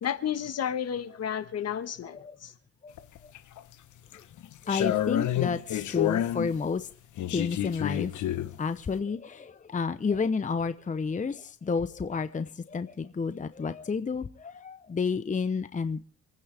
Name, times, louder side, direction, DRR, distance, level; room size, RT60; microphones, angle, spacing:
voice 1, 0.0-2.5, left 9 dB, 55° left, 1.4 m, -32 dB
voice 2, 2.0-2.4 2.8-2.9 4.7-6.9 7.3-8.1 8.6-16.0, left 5 dB, 25° left, 0.8 m, -31 dB
sound 1, 3.0-3.6 4.1-6.5 7.2-8.6, left 12 dB, 75° left, 1.2 m, -29 dB
27.5 x 9.7 x 3.5 m
cardioid pair, 90°, 30 cm